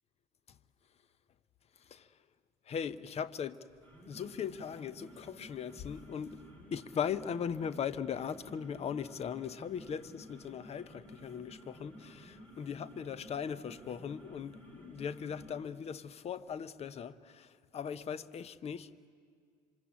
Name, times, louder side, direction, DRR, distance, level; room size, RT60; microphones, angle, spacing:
voice 1, 1.8-2.1 2.6-3.6 4.1-6.4 6.7-19.1, left 7 dB, 30° left, 0.9 m, -39 dB
sound 1, 3.7-15.7, equal, 10° left, 7.6 m, -54 dB
27.0 x 25.5 x 8.5 m
figure-of-eight pair, 65°, 21 cm